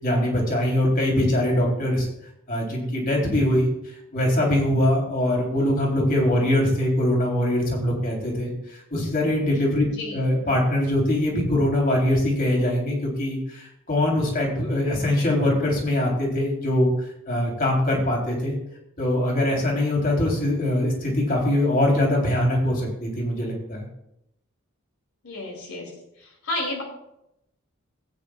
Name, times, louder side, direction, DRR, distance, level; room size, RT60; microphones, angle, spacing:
voice 1, 0.0-2.1 2.5-3.7 4.1-8.5 8.9-16.9 17.3-18.5 19.0-23.9, left 1 dB, 45° left, -1 dB, 3.4 m, -22 dB
voice 2, 9.9-10.2 25.2-25.9 26.2-26.8, left 2 dB, 80° left, -1 dB, 2.7 m, -31 dB
19.5 x 9.4 x 2.3 m, 0.82 s
head